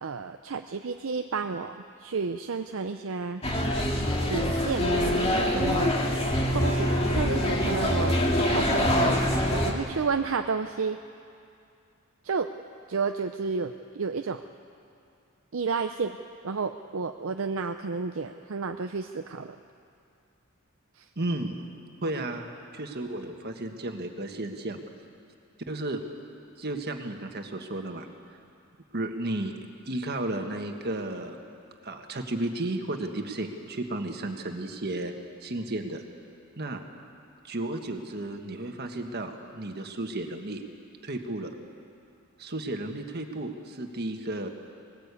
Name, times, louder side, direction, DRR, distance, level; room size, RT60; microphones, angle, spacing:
voice 1, 0.0-3.4 4.3-5.9 6.5-8.2 8.5-9.2 9.5-11.0 12.2-12.5 12.9-14.4 15.5-16.2 16.4-19.6 21.0-21.1, right 4 dB, 65° right, 7 dB, 0.6 m, -31 dB
sound 1, 3.4-9.7, left 1 dB, 30° left, 2.1 m, -25 dB
voice 2, 21.1-21.6 22.0-24.8 25.7-26.0 26.6-28.1 28.9-29.5 29.9-31.4 31.8-35.1 35.4-36.0 36.6-36.8 37.4-40.6 41.0-41.5 42.4-44.5, right 2 dB, 50° right, 4 dB, 1.6 m, -33 dB
20.5 x 18.5 x 8.4 m, 2.5 s
head